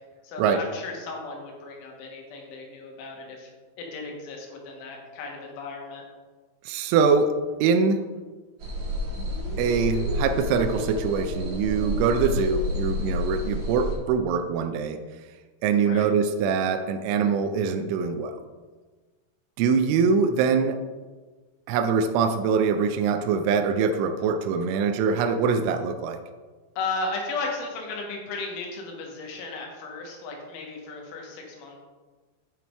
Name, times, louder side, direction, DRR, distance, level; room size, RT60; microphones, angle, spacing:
voice 1, 0.2-3.5 3.8-6.0 15.9-16.1 26.8-31.8, left 3 dB, 75° left, 0 dB, 3.8 m, -35 dB
voice 2, 6.7-8.0 9.6-15.0 15.6-18.4 19.6-20.8 21.7-26.2, right 5 dB, 85° right, 7 dB, 2.8 m, -23 dB
sound 1, 8.6-13.9, left 1 dB, 55° right, 1.8 m, -29 dB
8.9 x 8.6 x 3.4 m, 1.3 s
omnidirectional pair, 6.0 m